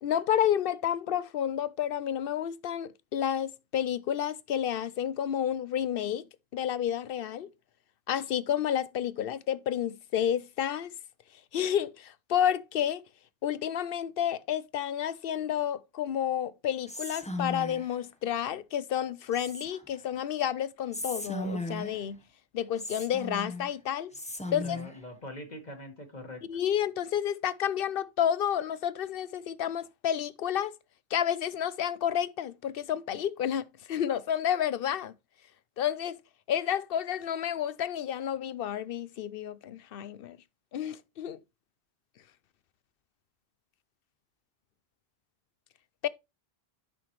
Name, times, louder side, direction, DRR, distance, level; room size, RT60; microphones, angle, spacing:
voice 1, 0.0-6.3 6.5-7.5 8.1-10.9 11.5-13.0 13.4-22.2 22.5-24.1 24.5-24.8 26.5-30.7 31.1-35.1 35.8-36.2 36.5-40.4 40.7-41.4 46.0-46.1, left 9 dB, 65° left, 0.8 m, -30 dB
Whispering, 16.9-18.0 19.3-20.0 20.9-22.1 22.8-23.7 24.1-25.0, left 1 dB, 5° left, 0.8 m, -37 dB
voice 2, 24.4-26.4, left 1 dB, 45° left, 1.8 m, -43 dB
10.0 x 5.9 x 3.1 m
omnidirectional pair, 1.1 m